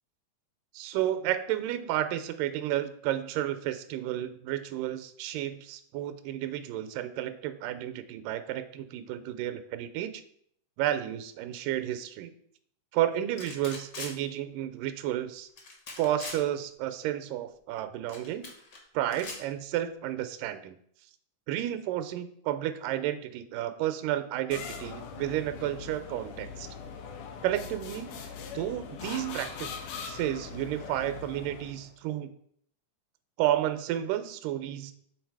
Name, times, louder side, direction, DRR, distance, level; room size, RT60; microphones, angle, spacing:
voice 1, 0.7-10.2 10.8-12.3 12.9-15.5 15.9-18.5 18.9-20.8 21.5-26.7 27.4-28.2 28.5-29.7 30.0-32.3 33.4-34.9, right 12 dB, 90° right, 10 dB, 2.2 m, -32 dB
sound 1, 13.4-14.1 15.6-16.4 18.1-18.8 19.1-19.4, left 3 dB, 55° left, 1.1 m, -41 dB
sound 2, 24.5-31.9, left 6 dB, 80° left, 2.2 m, -41 dB
6.8 x 3.9 x 4.6 m, 0.66 s
omnidirectional pair, 3.7 m